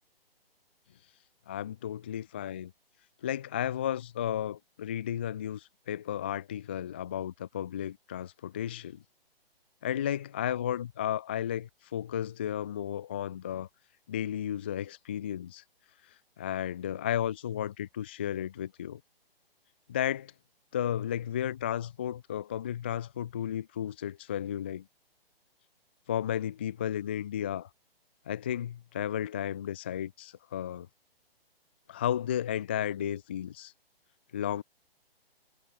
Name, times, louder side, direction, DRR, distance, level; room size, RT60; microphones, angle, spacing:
voice 1, 1.5-2.7 3.2-9.0 9.8-13.7 14.1-15.6 16.4-19.0 19.9-20.3 20.7-24.8 26.1-27.7 28.3-30.9 31.9-33.7 34.3-34.6, left 10 dB, 10° left, 0.4 m, -33 dB
figure-of-eight pair, 130°, 30 cm